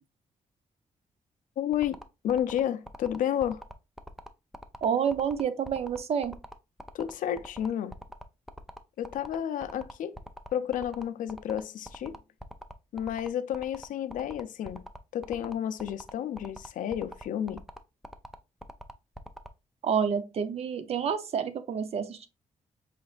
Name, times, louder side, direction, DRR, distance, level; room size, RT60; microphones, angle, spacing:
voice 1, 1.6-3.6 6.9-7.9 9.0-10.2 10.5-12.2 12.9-14.8 15.1-17.6, left 10 dB, 85° left, 0.4 m, -31 dB
sound 1, 1.7-19.5, equal, ahead, 0.3 m, -44 dB
voice 2, 4.8-6.3 19.8-22.3, right 7 dB, 50° right, 0.5 m, -29 dB
5.0 x 3.2 x 2.4 m
wide cardioid pair, 155°, 13 cm